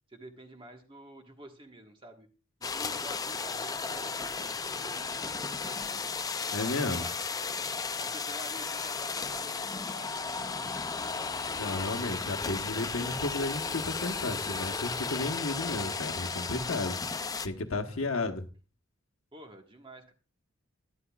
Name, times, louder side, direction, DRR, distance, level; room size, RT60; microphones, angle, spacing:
voice 1, 0.1-2.3 2.6-6.2 6.5-7.6 7.9-11.3 12.1-13.8 15.5-16.1 17.9-18.2 19.3-20.1, right 1 dB, 25° right, 1.4 m, -50 dB
sound 1, 2.6-17.5, left 4 dB, 20° left, 0.4 m, -34 dB
voice 2, 6.5-7.1 11.5-17.0 17.4-18.5, left 2 dB, 70° left, 1.1 m, -33 dB
12.0 x 11.5 x 2.3 m
head